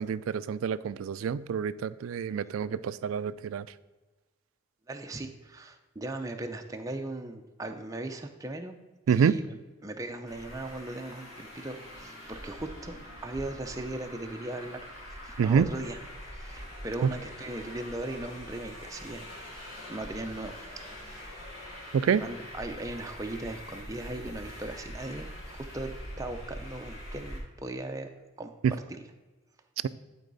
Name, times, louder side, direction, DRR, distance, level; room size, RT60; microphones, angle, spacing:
voice 1, 0.0-3.7 9.1-9.4 15.4-15.7 21.9-22.2 28.6-28.7, right 7 dB, 75° right, 17 dB, 0.3 m, -27 dB
voice 2, 4.9-8.8 9.1-14.8 15.2-16.0 16.2-21.4 22.2-28.1 28.4-28.5 28.9-29.0, right 2 dB, 15° right, 4 dB, 0.5 m, -38 dB
Traffic noise roadway noise, 10.3-27.4, equal, 85° left, 2.8 m, -44 dB
11.5 x 4.6 x 4.0 m, 1.2 s
head